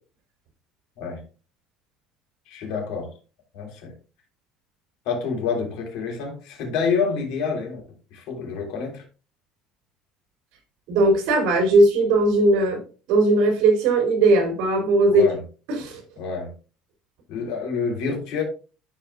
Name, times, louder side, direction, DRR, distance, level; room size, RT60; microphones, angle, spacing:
voice 1, 2.5-3.1 3.5-3.9 5.1-7.8 8.1-9.0 15.1-15.4 16.2-16.5 17.3-18.4, left 5 dB, 70° left, 1 dB, 3.4 m, -27 dB
voice 2, 10.9-12.8 13.1-15.2 15.8-16.0, right 2 dB, 70° right, 3 dB, 3.3 m, -18 dB
13.5 x 4.9 x 2.4 m, 0.35 s
cardioid pair, 165°, 0 cm